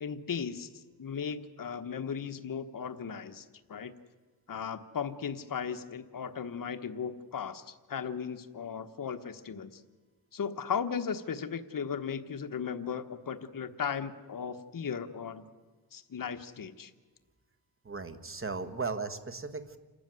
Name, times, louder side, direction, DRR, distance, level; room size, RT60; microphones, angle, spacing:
voice 1, 0.0-3.9 4.5-9.8 10.3-15.5 15.9-16.9, left 7 dB, 55° left, 8 dB, 1.3 m, -36 dB
voice 2, 17.8-19.8, right 4 dB, 30° right, 9 dB, 1.6 m, -36 dB
27.5 x 13.5 x 9.3 m, 1.3 s
wide cardioid pair, 105°, 40 cm